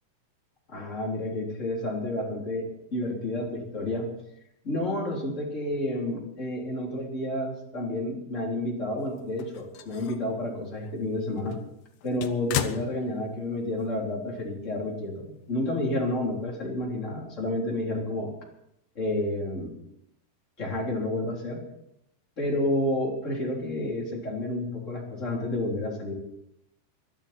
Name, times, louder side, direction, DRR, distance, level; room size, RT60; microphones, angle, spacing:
voice 1, 0.7-2.7 2.9-4.1 4.6-11.6 12.0-18.3 19.0-19.8 20.6-21.6 22.4-26.1, left 1 dB, 20° left, -2 dB, 3.4 m, -30 dB
sound 1, 9.2-10.3 10.8-10.9 11.4-13.5 13.8-13.9 15.2-15.3, left 10 dB, 90° left, 1.7 m, -35 dB
23.0 x 12.0 x 4.4 m, 0.78 s
omnidirectional pair, 5.0 m